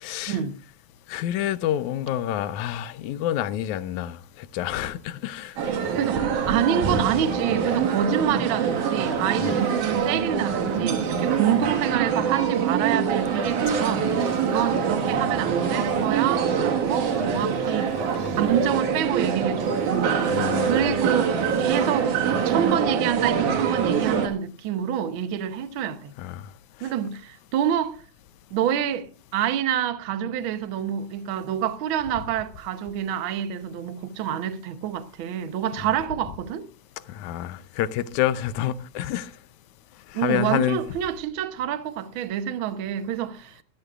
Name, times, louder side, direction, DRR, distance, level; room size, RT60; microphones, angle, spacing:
voice 1, 0.0-0.4 1.1-5.5 9.4-9.5 18.2-18.4 20.3-20.8 26.2-26.5 37.1-39.3 40.1-40.8, left 12 dB, 80° left, 2.1 m, -28 dB
sound 1, 5.6-24.3, right 6 dB, 85° right, 3.2 m, -24 dB
voice 2, 6.4-14.1 14.4-17.9 18.4-20.2 20.6-26.1 26.8-28.0 28.5-29.1 29.3-36.7 40.1-43.6, right 9 dB, 65° right, 1.3 m, -27 dB
22.0 x 13.5 x 2.4 m
omnidirectional pair, 3.4 m